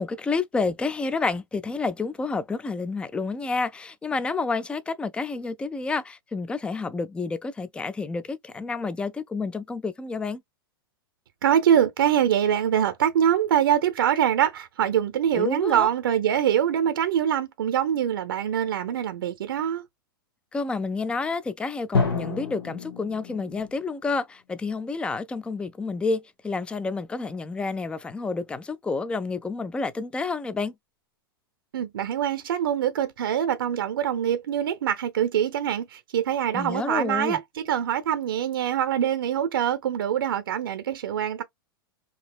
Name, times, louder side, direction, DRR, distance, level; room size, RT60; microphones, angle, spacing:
voice 1, 0.0-10.4 15.3-15.9 20.5-30.7 36.5-37.4, left 4 dB, 10° left, 0.3 m, -29 dB
voice 2, 11.4-19.8 31.7-41.4, right 9 dB, 70° right, 0.6 m, -24 dB
Drum, 21.9-23.9, left 4 dB, 75° left, 1.3 m, -28 dB
3.9 x 2.7 x 2.3 m
hypercardioid pair, 105°, 12 cm